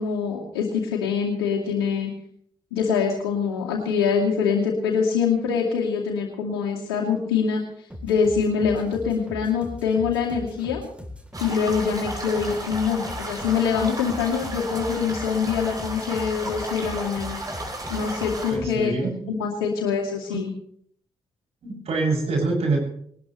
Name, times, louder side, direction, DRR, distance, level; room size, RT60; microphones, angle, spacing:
voice 1, 0.0-2.1 2.7-7.6 8.0-10.8 11.4-17.4 17.9-18.9 19.3-20.5, left 6 dB, 85° left, -3 dB, 2.4 m, -24 dB
sound 1, 7.9-18.9, left 1 dB, 10° right, 3.7 m, -40 dB
sound 2, 11.3-18.6, right 1 dB, 30° right, 7.9 m, -34 dB
voice 2, 18.5-19.3 20.3-20.4 21.6-22.8, right 3 dB, 60° right, -1 dB, 7.9 m, -25 dB
21.0 x 19.5 x 3.3 m, 0.64 s
hypercardioid pair, 40°, 12 cm